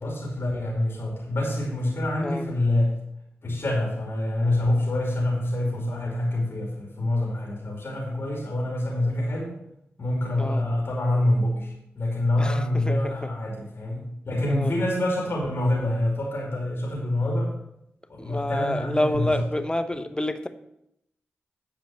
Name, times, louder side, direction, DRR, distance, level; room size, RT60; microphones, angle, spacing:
voice 1, 0.0-2.9 3.4-9.5 10.0-17.5 18.1-19.6, left 1 dB, 60° left, -2 dB, 2.6 m, -26 dB
voice 2, 12.4-13.3 14.5-14.8 18.2-20.5, left 1 dB, 20° left, 10 dB, 0.9 m, -28 dB
9.1 x 5.1 x 7.4 m, 0.79 s
cardioid pair, 40°, 5 cm